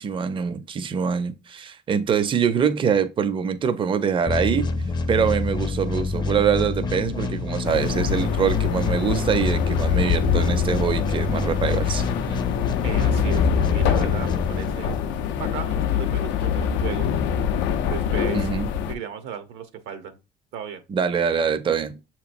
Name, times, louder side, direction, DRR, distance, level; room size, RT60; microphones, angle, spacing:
voice 1, 0.0-4.7 5.1-12.0 18.3-18.7 20.9-22.0, right 7 dB, 30° right, 0.5 m, -24 dB
sound 1, 4.3-15.2, left 3 dB, 25° left, 0.5 m, -27 dB
sound 2, 7.6-18.9, left 8 dB, 85° left, 0.5 m, -24 dB
voice 2, 12.8-14.9 15.3-17.1 17.9-18.5 18.9-20.2 20.5-20.8, right 8 dB, 80° right, 0.7 m, -35 dB
6.4 x 3.0 x 2.5 m
cardioid pair, 115°, 18 cm